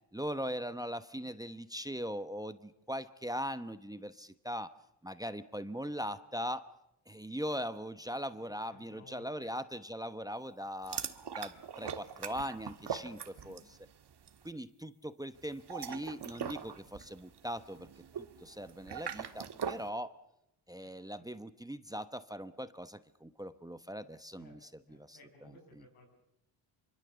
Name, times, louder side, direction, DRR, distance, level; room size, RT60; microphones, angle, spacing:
voice 1, 0.1-4.7 5.0-6.7 7.1-11.0 11.4-13.6 14.4-17.9 18.4-20.1 20.7-24.6 24.9-25.5, equal, 5° right, 12 dB, 1.0 m, -40 dB
voice 2, 8.3-9.5 13.2-13.6 20.8-21.3 24.4-24.6 24.9-26.1, left 3 dB, 90° left, 2 dB, 7.7 m, -59 dB
sound 1, 10.8-13.8 14.0-14.4 15.5-19.9, right 7 dB, 55° right, 1.7 m, -41 dB
25.0 x 24.0 x 6.9 m, 0.81 s
cardioid pair, 75°, 49 cm